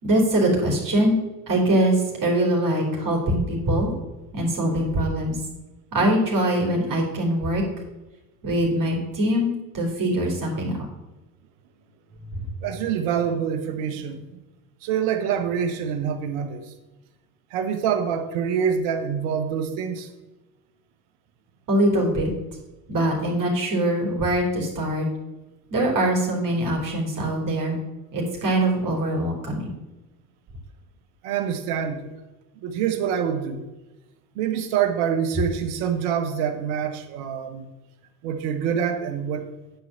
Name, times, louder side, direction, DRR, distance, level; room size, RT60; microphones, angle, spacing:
voice 1, 0.0-3.9 4.3-5.4 5.9-7.6 8.4-10.8 21.7-22.3 22.9-25.1 25.7-27.8 28.1-29.7, right 1 dB, 45° right, -1 dB, 3.5 m, -23 dB
voice 2, 12.1-14.4 14.8-16.6 17.5-20.1 31.2-32.1 32.6-33.6 34.3-37.6 38.2-39.5, right 8 dB, 75° right, 7 dB, 1.4 m, -26 dB
9.5 x 4.5 x 7.3 m, 1.1 s
hypercardioid pair, 80°, 45 cm